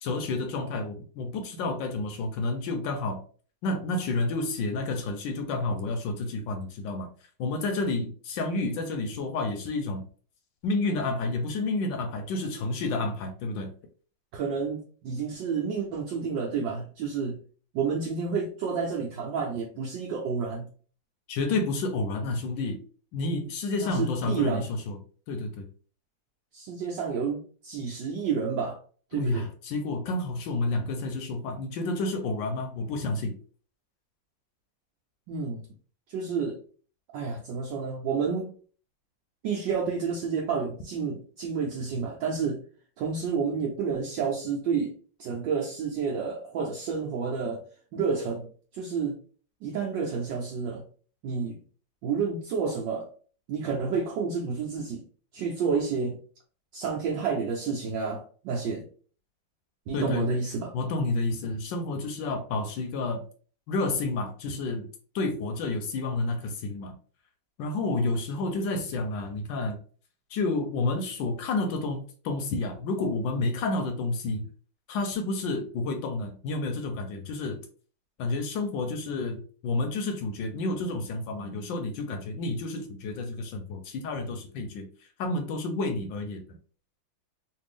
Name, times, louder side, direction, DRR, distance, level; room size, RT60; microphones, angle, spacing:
voice 1, 0.0-3.2 3.6-7.1 7.4-10.0 10.6-13.7 21.3-22.8 23.1-25.0 25.3-25.7 29.1-33.3 59.9-60.3 60.7-63.2 63.7-64.9 65.1-66.9 67.6-69.8 70.3-74.4 74.9-77.6 78.2-84.9 85.2-86.4, left 2 dB, 75° left, 1.2 m, -30 dB
voice 2, 14.3-17.4 17.7-20.7 23.8-24.7 26.5-28.8 29.1-29.5 35.3-35.6 36.1-36.6 37.1-38.5 39.4-42.6 43.0-44.9 45.2-47.6 47.9-48.5 48.7-49.1 49.6-50.8 51.2-51.6 52.0-53.1 53.5-55.0 55.3-56.2 56.7-58.8 59.9-60.7, right 5 dB, 70° right, 1.2 m, -30 dB
3.4 x 2.5 x 3.3 m
omnidirectional pair, 2.2 m